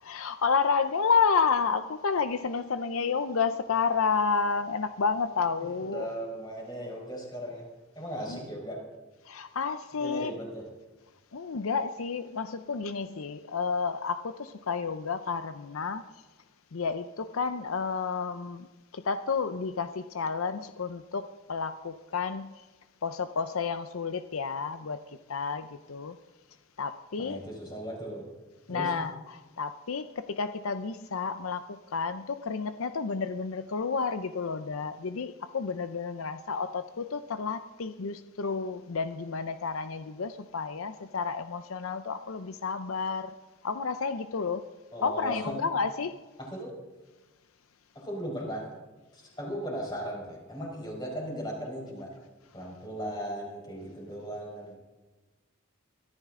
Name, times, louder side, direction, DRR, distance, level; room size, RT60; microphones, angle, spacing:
voice 1, 0.0-6.1 8.3-8.4 9.3-10.3 11.3-16.0 16.7-18.7 18.9-22.5 23.0-25.0 25.3-26.2 26.8-27.4 28.7-43.3 43.6-44.7 45.0-46.2, left 5 dB, 80° left, 0.6 m, -30 dB
voice 2, 5.6-7.6 7.9-8.8 10.0-10.7 27.2-28.3 28.7-28.9 44.9-45.6 46.4-46.7 47.9-48.8 49.1-52.1 52.5-54.8, equal, 20° left, 4.9 m, -37 dB
23.0 x 13.5 x 3.7 m
head